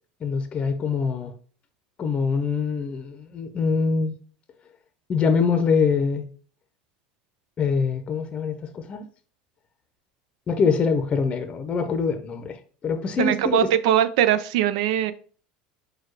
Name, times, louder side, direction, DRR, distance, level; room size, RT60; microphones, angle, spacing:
voice 1, 0.2-1.3 2.0-4.1 5.1-6.3 7.6-9.1 10.5-13.7, left 5 dB, 30° left, 0.6 m, -24 dB
voice 2, 13.2-15.1, right 10 dB, 80° right, 0.4 m, -21 dB
4.5 x 2.3 x 4.6 m
supercardioid pair, 110°, 4 cm